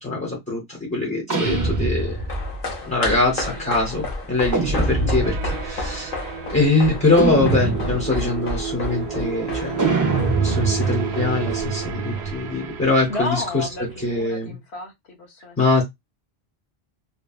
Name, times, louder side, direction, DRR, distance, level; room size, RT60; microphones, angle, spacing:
voice 1, 0.0-2.2 2.8-6.1 6.5-9.9 10.4-13.7 14.0-14.5 15.6-15.8, left 3 dB, 10° left, 0.9 m, -23 dB
sound 1, 1.3-2.6 4.5-5.6 7.2-8.2 9.8-12.5, right 3 dB, 25° right, 0.5 m, -24 dB
sound 2, 2.0-12.5 12.8-12.9, left 1 dB, 55° left, 1.1 m, -32 dB
voice 2, 3.1-3.8 4.6-5.1 13.1-15.8, left 2 dB, 75° left, 1.4 m, -33 dB
sound 3, 5.2-14.2, right 7 dB, 80° right, 0.8 m, -32 dB
3.2 x 2.3 x 2.3 m
omnidirectional pair, 1.1 m